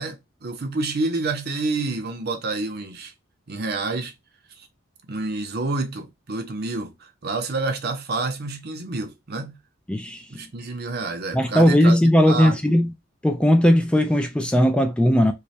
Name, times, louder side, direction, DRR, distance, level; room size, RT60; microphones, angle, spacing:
voice 1, 0.0-3.1 3.5-4.1 4.6-4.7 5.1-9.6 10.3-12.0 12.2-12.6, right 3 dB, 55° right, 0.7 m, -28 dB
voice 2, 11.3-12.9 13.2-15.3, equal, 5° left, 0.3 m, -18 dB
3.2 x 2.2 x 4.0 m
head